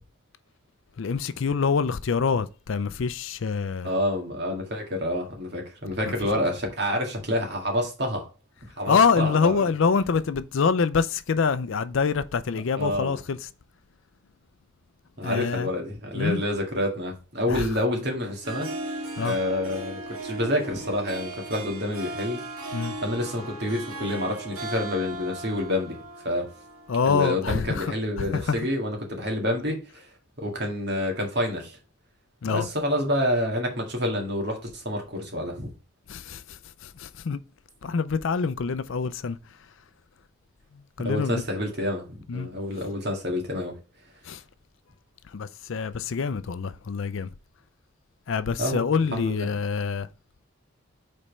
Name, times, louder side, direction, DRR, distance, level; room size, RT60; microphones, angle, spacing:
voice 1, 1.0-3.9 6.0-6.1 8.9-13.5 15.2-15.7 16.1-16.4 17.5-17.7 19.2-19.4 22.7-23.0 26.9-28.6 32.4-32.7 36.1-37.4 37.8-39.4 40.7-41.4 42.3-42.5 44.3-44.4 45.3-47.3 48.3-50.1, left 5 dB, 70° left, 0.4 m, -26 dB
voice 2, 3.8-8.3 8.6-9.6 12.8-13.2 15.2-18.7 19.2-22.4 23.0-26.0 26.2-26.5 27.1-31.8 32.5-35.7 41.0-43.8 48.6-48.8 49.1-49.5, left 1 dB, 50° right, 1.9 m, -28 dB
Harp, 18.3-27.0, right 2 dB, 85° right, 2.3 m, -37 dB
5.1 x 4.3 x 5.4 m
head